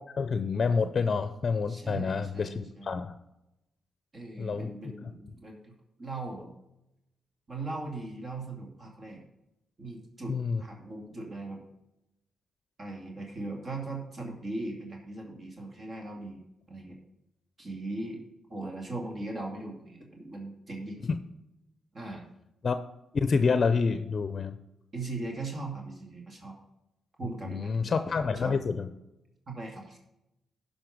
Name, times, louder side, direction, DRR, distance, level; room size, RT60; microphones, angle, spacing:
voice 1, 0.2-3.1 4.4-4.7 10.3-10.6 22.6-22.8 23.1-24.6 27.4-28.9, left 5 dB, 50° left, 11 dB, 0.6 m, -28 dB
voice 2, 1.7-2.9 4.1-5.7 6.0-6.5 7.5-9.2 9.8-11.6 12.8-16.4 16.7-17.0 17.6-18.2 18.5-21.0 21.9-22.2 24.9-26.6 27.2-28.6 29.5-30.0, right 2 dB, 45° right, 0 dB, 2.5 m, -39 dB
11.0 x 5.3 x 5.2 m, 0.90 s
supercardioid pair, 55°, 0 cm